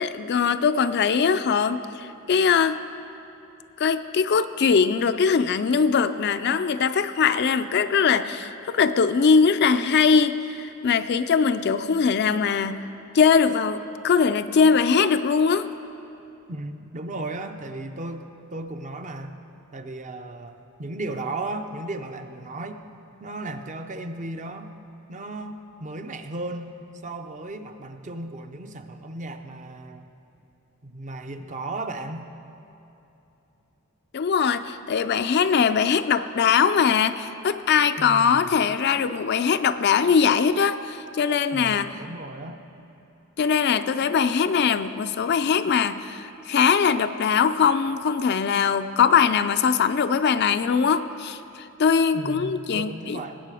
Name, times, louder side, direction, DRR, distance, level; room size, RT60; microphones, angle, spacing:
voice 1, 0.0-2.8 3.8-12.8 13.1-15.7 34.1-41.9 43.4-51.4 51.8-53.2, left 6 dB, 50° left, 11 dB, 0.4 m, -21 dB
voice 2, 16.5-19.4 19.7-22.8 23.2-24.7 25.1-26.7 27.0-30.1 30.8-32.3 38.0-38.5 41.5-42.6 52.1-53.4, right 2 dB, 35° right, 7 dB, 0.6 m, -35 dB
18.5 x 8.3 x 4.9 m, 3.0 s
head